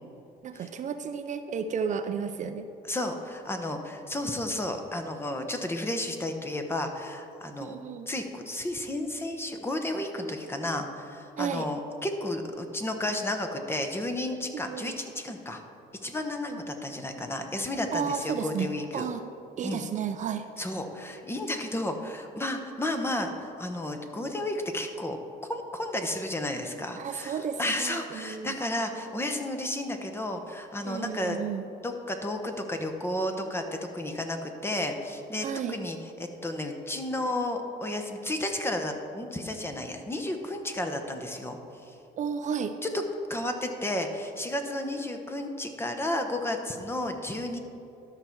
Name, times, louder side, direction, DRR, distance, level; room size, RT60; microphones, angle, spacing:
voice 1, 0.4-2.7 7.6-8.1 11.4-11.7 14.5-15.0 16.5-16.6 17.9-18.7 18.9-19.2 19.6-20.5 27.0-28.6 30.8-31.7 35.4-35.8 42.2-42.7, right 7 dB, 45° right, 9 dB, 0.5 m, -32 dB
voice 2, 2.9-7.7 8.1-15.6 16.0-19.1 19.6-19.9 20.6-31.4 31.8-41.9 42.8-43.0 43.3-47.6, left 1 dB, 15° left, 5 dB, 0.9 m, -32 dB
12.5 x 5.7 x 4.6 m, 2.8 s
cardioid pair, 110°, 17 cm